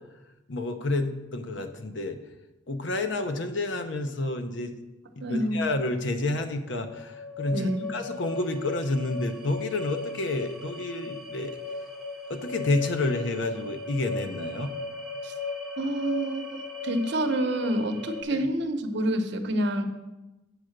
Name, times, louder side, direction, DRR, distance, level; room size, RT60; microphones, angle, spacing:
voice 1, 0.5-2.2 2.7-4.7 5.2-11.6 12.3-14.7 18.3-18.5, left 2 dB, 65° left, 7 dB, 0.8 m, -29 dB
voice 2, 5.2-5.7 7.5-7.8 15.2-15.3 15.8-16.6 16.8-19.8, right 1 dB, 60° right, 6 dB, 0.8 m, -27 dB
sound 1, 6.7-18.2, left 3 dB, ahead, 0.8 m, -37 dB
7.9 x 4.8 x 6.5 m, 1.0 s
head